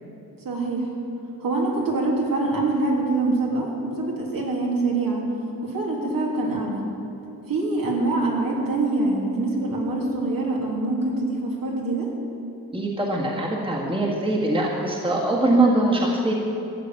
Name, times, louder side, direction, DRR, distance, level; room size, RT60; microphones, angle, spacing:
voice 1, 0.4-0.9 1.4-5.3 5.6-6.8 7.5-12.1, right 2 dB, 65° right, -2 dB, 3.1 m, -24 dB
voice 2, 12.7-16.3, right 2 dB, 15° right, -3 dB, 1.9 m, -22 dB
14.0 x 7.2 x 9.1 m, 2.9 s
wide cardioid pair, 115°, 36 cm